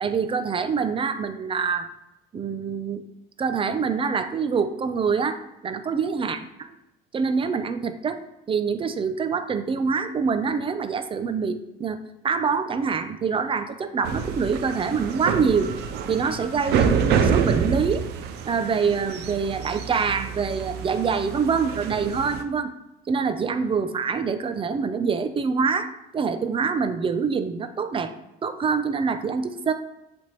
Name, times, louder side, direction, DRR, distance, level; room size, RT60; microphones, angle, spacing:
voice 1, 0.0-1.9 2.3-3.0 3.4-6.7 7.1-12.0 12.2-15.7 16.1-18.1 18.4-22.7 23.1-28.1 28.4-29.7, right 5 dB, 30° right, 10 dB, 0.5 m, -25 dB
sound 1, 14.0-22.4, right 7 dB, 80° right, 0.6 m, -27 dB
10.0 x 3.5 x 3.0 m, 0.90 s
cardioid pair, 110°, 17 cm